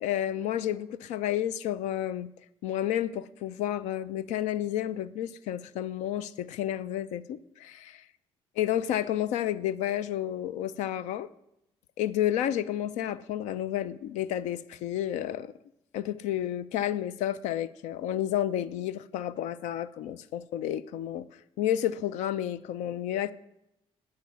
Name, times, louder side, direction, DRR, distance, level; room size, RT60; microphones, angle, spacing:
voice 1, 0.0-2.3 2.6-8.0 8.6-11.3 12.0-15.5 15.9-21.3 21.6-23.3, left 11 dB, 80° left, 0.5 m, -31 dB
11.5 x 5.2 x 6.9 m
supercardioid pair, 80°, 12 cm